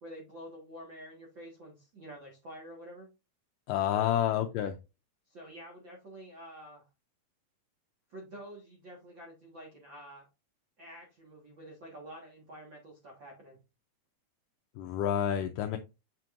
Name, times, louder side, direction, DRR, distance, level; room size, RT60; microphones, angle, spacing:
voice 1, 0.0-3.1 3.9-4.2 5.3-6.8 8.1-10.3 10.8-13.6, right 1 dB, 55° right, 1.3 m, -48 dB
voice 2, 3.7-4.8 14.8-15.8, left 10 dB, 85° left, 1.9 m, -29 dB
7.6 x 6.0 x 2.5 m
omnidirectional pair, 4.4 m